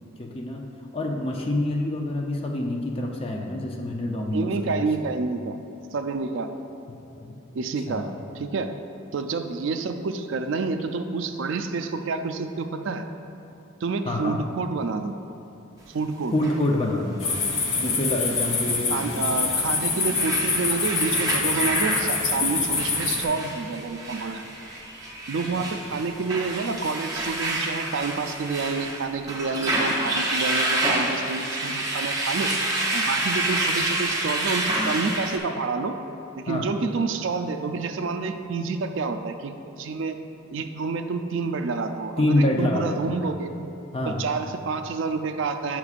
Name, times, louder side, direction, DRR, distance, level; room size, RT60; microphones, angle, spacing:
voice 1, 0.2-0.6 0.9-4.8 7.2-7.3 7.9-8.2 14.0-14.4 16.3-17.4 17.8-19.3 25.6-25.7 36.5-36.7 42.2-43.2 43.9-44.2, left 1 dB, 25° left, 1 dB, 0.5 m, -26 dB
voice 2, 4.3-5.6 5.9-6.5 7.5-8.1 8.4-8.7 9.1-13.1 13.8-15.1 15.9-16.3 18.9-24.5 25.3-32.5 32.9-35.9 36.4-40.2 40.5-43.5 44.1-45.8, right 4 dB, 60° right, 7 dB, 0.4 m, -28 dB
sound 1, 16.4-16.5 18.9-19.1 19.7-35.4, right 1 dB, 15° right, 0.7 m, -28 dB
sound 2, 17.2-23.2, left 4 dB, 80° left, 0.9 m, -25 dB
9.5 x 5.9 x 2.4 m, 2.8 s
head